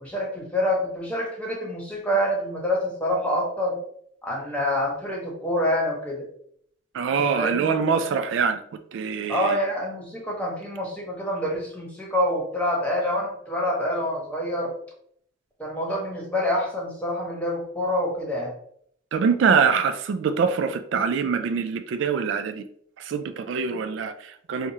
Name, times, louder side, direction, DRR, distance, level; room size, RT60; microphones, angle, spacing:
voice 1, 0.0-3.8 4.2-6.3 7.4-7.7 9.3-14.7 15.6-18.5, equal, 5° left, -2 dB, 1.0 m, -26 dB
voice 2, 6.9-9.6 19.1-22.6 23.0-24.7, right 6 dB, 70° right, 8 dB, 0.3 m, -24 dB
4.5 x 2.4 x 2.7 m, 0.66 s
head